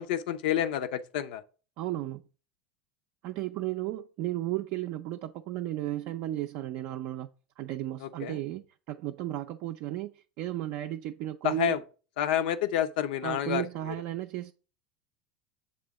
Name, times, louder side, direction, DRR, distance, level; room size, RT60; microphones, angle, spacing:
voice 1, 0.0-1.4 8.0-8.4 11.4-11.8 12.2-13.9, left 10 dB, 65° left, 0.6 m, -29 dB
voice 2, 1.8-2.2 3.2-7.3 7.6-11.8 13.2-14.5, right 14 dB, 55° right, 0.4 m, -34 dB
7.4 x 3.4 x 4.9 m
hypercardioid pair, 80°, 5 cm